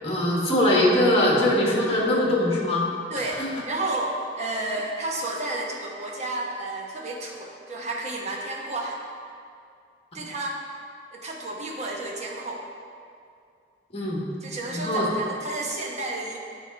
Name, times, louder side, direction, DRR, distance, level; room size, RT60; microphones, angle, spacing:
voice 1, 0.0-2.8 13.9-14.2 14.7-15.1, left 1 dB, 30° left, -3 dB, 1.3 m, -21 dB
voice 2, 3.1-9.0 10.1-10.6 11.1-12.6 14.4-16.4, right 2 dB, 35° right, -1 dB, 1.0 m, -31 dB
8.1 x 4.9 x 5.2 m, 2.3 s
head